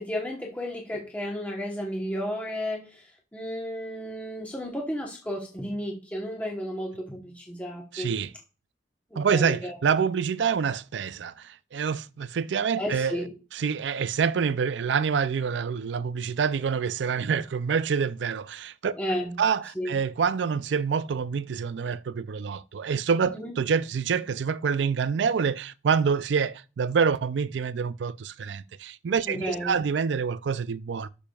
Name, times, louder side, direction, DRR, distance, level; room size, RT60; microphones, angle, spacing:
voice 1, 0.0-8.1 9.1-9.8 12.8-13.3 18.9-19.4 19.7-20.0 23.3-23.5 29.3-29.8, equal, 10° left, 1.1 m, -33 dB
voice 2, 7.9-8.3 9.2-13.2 13.5-18.9 19.4-31.1, right 6 dB, 75° right, 0.4 m, -27 dB
11.5 x 7.0 x 2.4 m
head